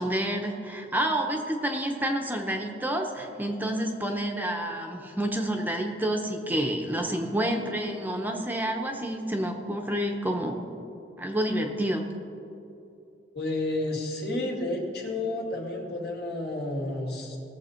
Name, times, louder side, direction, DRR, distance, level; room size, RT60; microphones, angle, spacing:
voice 1, 0.0-10.7 11.2-12.1, right 1 dB, 10° right, 3 dB, 0.8 m, -29 dB
voice 2, 13.3-17.4, left 2 dB, 65° left, -1 dB, 2.5 m, -31 dB
19.0 x 7.2 x 4.4 m, 2.7 s
head